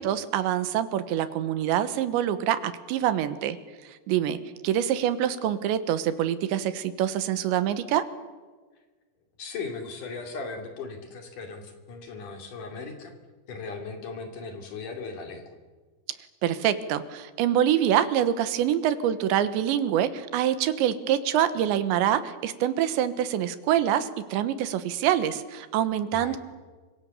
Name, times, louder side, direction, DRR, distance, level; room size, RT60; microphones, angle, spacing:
voice 1, 0.0-3.6 3.9-4.4 4.6-8.1 16.4-26.4, right 10 dB, 90° right, 12 dB, 3.6 m, -25 dB
voice 2, 9.4-13.1 13.5-15.5 26.1-26.4, left 4 dB, 50° left, 5 dB, 3.9 m, -37 dB
28.5 x 25.5 x 7.2 m, 1.4 s
omnidirectional pair, 5.1 m